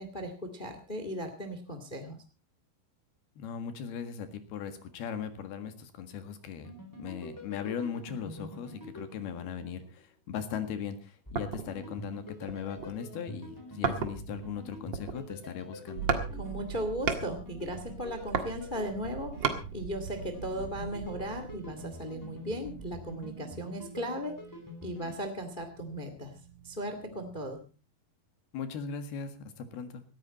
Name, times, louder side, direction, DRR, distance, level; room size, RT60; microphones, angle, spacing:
voice 1, 0.0-2.2 16.3-24.4 24.8-26.3 26.6-27.6, equal, 20° left, 7 dB, 1.2 m, -37 dB
voice 2, 3.4-6.7 7.0-16.1 28.5-30.0, left 7 dB, 80° left, 9 dB, 3.7 m, -38 dB
sound 1, 6.6-10.0 11.3-25.2, equal, 5° left, 3.2 m, -46 dB
sound 2, 11.4-11.8 12.4-13.0 13.8-14.4 14.8-15.5 16.1-16.3 16.6-17.3 18.0-19.6 20.2-20.3, right 5 dB, 45° right, 1.5 m, -32 dB
sound 3, 16.0-27.5, right 8 dB, 70° right, 2.3 m, -45 dB
18.0 x 14.5 x 4.2 m, 0.34 s
omnidirectional pair, 4.4 m